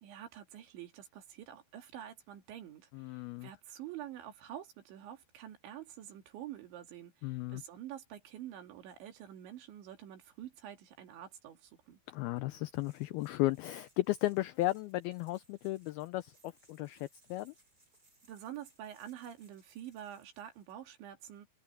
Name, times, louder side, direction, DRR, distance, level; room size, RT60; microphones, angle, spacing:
voice 1, 0.0-12.0 18.2-21.5, right 11 dB, 85° right, 4.8 m, -47 dB
voice 2, 2.9-3.5 7.2-7.6 12.1-17.5, left 17 dB, 90° left, 2.1 m, -35 dB
sound 1, 12.6-20.7, right 2 dB, 20° right, 8.5 m, -69 dB
omnidirectional pair, 5.1 m